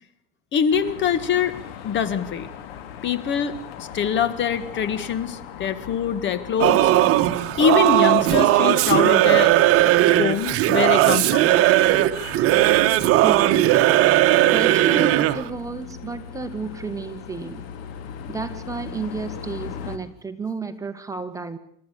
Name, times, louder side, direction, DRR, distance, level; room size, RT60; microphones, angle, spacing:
voice 1, 0.5-1.5 1.8-2.5 3.0-6.9 7.6-9.5 10.2-11.5 12.1-12.3, left 7 dB, 40° left, 14 dB, 1.7 m, -24 dB
sound 1, 0.7-20.0, left 8 dB, 80° left, 3.0 m, -39 dB
Singing / Musical instrument, 6.6-15.5, right 14 dB, 50° right, 1.4 m, -17 dB
voice 2, 13.2-13.6 14.5-17.6 18.3-21.6, right 4 dB, 10° right, 7 dB, 1.8 m, -32 dB
28.0 x 13.5 x 8.5 m, 0.70 s
supercardioid pair, 130°, 29 cm